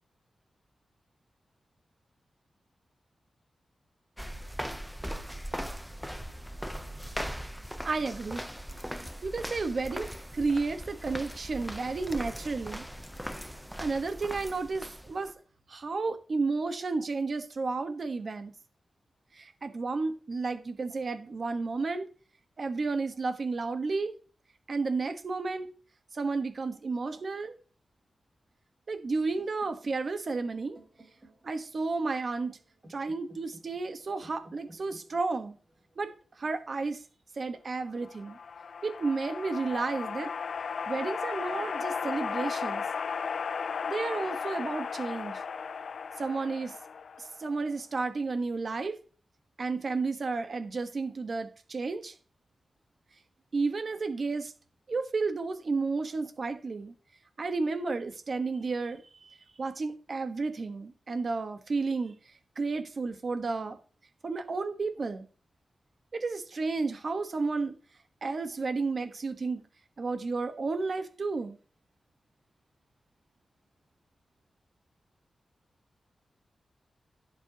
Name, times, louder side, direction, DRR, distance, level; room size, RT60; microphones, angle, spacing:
sound 1, 4.2-15.3, equal, ahead, 0.8 m, -39 dB
voice 1, 7.8-8.4 9.2-12.9 13.8-15.3 15.7-18.5 19.3-22.1 22.6-24.1 24.7-25.7 26.1-27.6 28.9-30.8 31.4-32.6 32.9-35.6 36.0-37.0 37.3-38.4 38.8-40.3 40.9-42.8 43.9-45.4 46.2-46.8 47.2-49.0 49.6-52.1 53.5-54.5 54.9-56.9 57.4-63.8 64.2-65.3 66.1-67.8 68.2-69.6 70.0-71.6, right 3 dB, 50° right, 1.3 m, -32 dB
sound 2, 29.1-37.1, right 1 dB, 30° right, 4.1 m, -58 dB
sound 3, 38.0-47.6, left 6 dB, 70° left, 0.5 m, -35 dB
16.0 x 7.6 x 3.0 m
wide cardioid pair, 115°, 0 cm